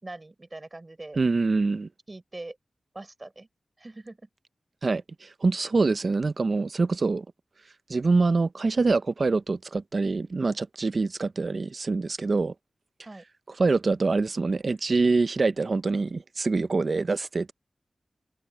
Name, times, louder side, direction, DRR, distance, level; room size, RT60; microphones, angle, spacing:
voice 1, 0.0-1.2 2.1-2.6 2.9-3.5 3.8-4.3 13.0-13.2, right 2 dB, 30° right, 4.6 m, -42 dB
voice 2, 1.2-1.9 4.8-7.2 7.9-12.5 13.6-17.5, right 3 dB, 50° right, 0.7 m, -25 dB
wide cardioid pair, 85°, 0 cm